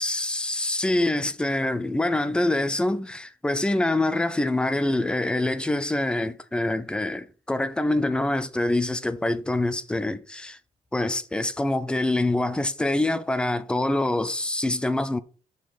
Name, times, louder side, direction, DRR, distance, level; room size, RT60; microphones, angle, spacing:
voice 1, 0.0-10.6 10.9-15.2, left 2 dB, 5° left, 0.4 m, -25 dB
5.8 x 5.2 x 4.8 m
cardioid pair, 175°, 14 cm